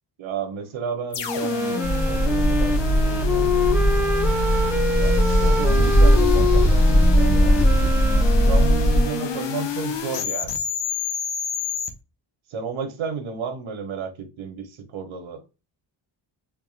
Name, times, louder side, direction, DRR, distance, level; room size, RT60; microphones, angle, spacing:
voice 1, 0.2-1.8 2.1-2.8 3.0-3.8 5.0-7.6 8.4-10.6 12.5-15.4, right 6 dB, 85° right, 1.0 m, -32 dB
sound 1, 1.1-11.9, left 7 dB, 65° left, 0.9 m, -30 dB
Wind instrument woodwind instrument, 1.2-9.6, left 2 dB, 5° right, 0.7 m, -26 dB
sound 2, 1.8-9.0, equal, 35° left, 1.6 m, -19 dB
3.5 x 3.5 x 2.4 m
cardioid pair, 75°, 46 cm